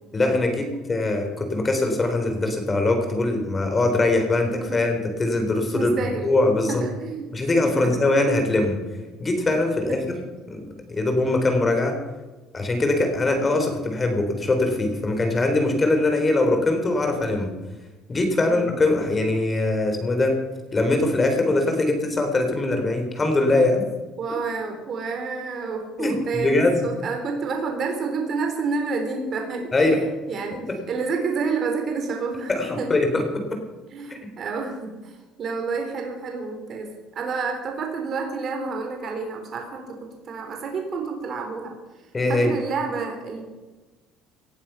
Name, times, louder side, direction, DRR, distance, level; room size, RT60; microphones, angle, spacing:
voice 1, 0.1-5.9 6.2-6.8 7.3-8.8 9.2-10.2 10.5-10.6 10.9-12.0 12.5-17.5 18.1-20.4 20.7-23.8 26.0-26.9 29.7-30.0 30.7-30.8 32.5-33.6 34.1-34.2 42.1-42.5, left 2 dB, 25° left, 5 dB, 3.9 m, -22 dB
voice 2, 5.7-6.3 6.7-7.3 7.6-8.0 9.5-9.6 9.9-10.0 13.5-13.6 18.5-18.7 24.2-29.7 30.3-32.9 33.9-41.8 42.3-43.4, right 4 dB, 45° right, 3 dB, 3.8 m, -29 dB
18.5 x 11.5 x 5.7 m, 1.2 s
cardioid pair, 110°, 0 cm